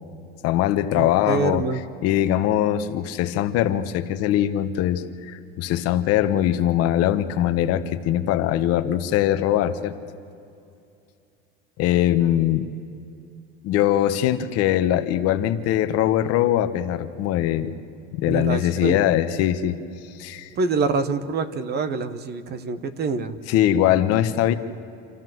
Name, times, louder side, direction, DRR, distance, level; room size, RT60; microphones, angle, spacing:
voice 1, 0.4-1.7 2.0-10.0 11.8-12.7 13.6-17.7 18.1-19.8 20.2-20.5 23.5-24.5, left 12 dB, 55° left, 10 dB, 1.2 m, -21 dB
voice 2, 1.0-1.8 18.3-19.0 20.5-23.4, right 4 dB, 35° right, 13 dB, 1.1 m, -26 dB
27.5 x 13.5 x 7.8 m, 2.6 s
supercardioid pair, 135°, 30 cm